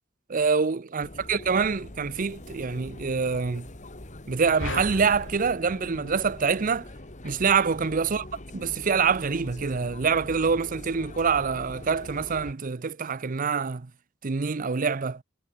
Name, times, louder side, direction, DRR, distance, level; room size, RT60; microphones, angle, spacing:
voice 1, 0.3-3.7 4.3-6.9 7.2-8.3 8.5-13.9 14.2-15.2, right 5 dB, 45° right, 0.6 m, -25 dB
sound 1, 1.0-12.5, left 1 dB, 40° left, 2.5 m, -43 dB
sound 2, 4.6-7.0, left 2 dB, 70° left, 4.7 m, -38 dB
head